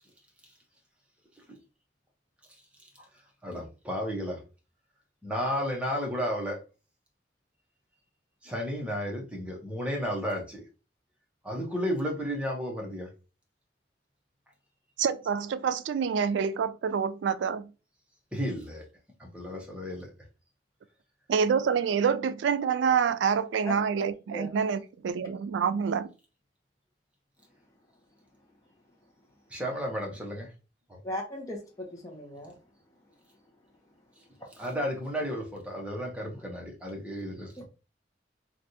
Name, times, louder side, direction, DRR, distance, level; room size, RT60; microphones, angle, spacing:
voice 1, 3.4-4.4 5.2-6.6 8.4-10.6 11.4-13.1 18.3-18.8 19.2-20.1 29.5-30.5 34.6-37.6, equal, 5° right, 0.9 m, -33 dB
voice 2, 15.0-17.7 21.3-26.1, right 6 dB, 90° right, 0.3 m, -27 dB
voice 3, 31.0-32.5 34.4-34.5 37.6-37.7, left 1 dB, 20° left, 0.9 m, -37 dB
3.3 x 2.5 x 2.7 m
head